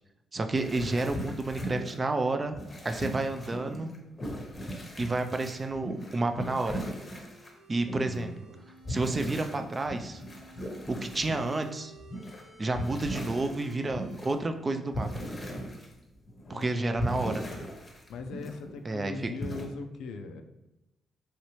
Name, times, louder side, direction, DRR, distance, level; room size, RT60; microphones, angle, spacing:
voice 1, 0.3-2.6 2.8-3.9 5.0-6.8 7.7-8.3 8.9-10.2 10.9-11.9 12.6-15.1 16.5-17.3 18.9-19.1, right 2 dB, 30° right, 7 dB, 0.3 m, -30 dB
sound 1, 0.6-2.1 2.5-7.5 7.8-11.6 12.0-12.4 12.7-14.5 14.9-16.6 17.0-18.8 19.1-19.6, equal, 30° left, 0.7 m, -38 dB
sound 2, 5.6-9.6 10.1-14.2, right 2 dB, 85° right, 1.0 m, -54 dB
voice 2, 8.0-8.4 16.4-17.7 18.1-20.4, left 4 dB, 80° left, 6 dB, 0.3 m, -41 dB
3.1 x 2.8 x 3.0 m, 0.96 s
cardioid pair, 75°, 0 cm